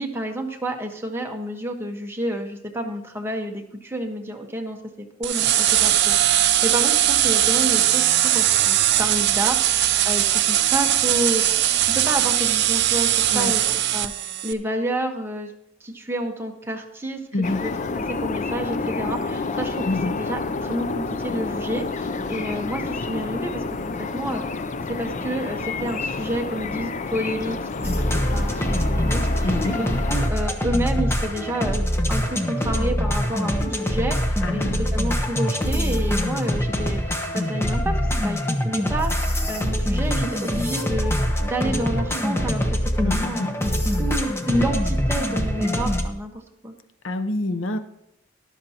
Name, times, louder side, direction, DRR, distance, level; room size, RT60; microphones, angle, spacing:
voice 1, 0.0-11.4 11.8-13.6 13.9-15.5 15.8-17.2 17.6-17.7 18.1-23.6 24.0-24.4 24.9-28.0 28.3-31.8 32.1-41.1 41.4-43.7 44.0-46.3 46.6-46.7, right 1 dB, 15° right, 2 dB, 1.2 m, -29 dB
sound 1, 5.2-14.5, right 12 dB, 60° right, 0.6 m, -20 dB
sound 2, 17.4-30.3, left 3 dB, 40° left, 0.5 m, -29 dB
sound 3, 27.8-46.0, equal, 15° left, 1.0 m, -24 dB
voice 2, 29.4-29.7 34.4-34.8 43.0-43.5 47.0-47.8, left 2 dB, 75° left, 11 dB, 0.8 m, -26 dB
13.0 x 12.0 x 2.9 m, 0.81 s
head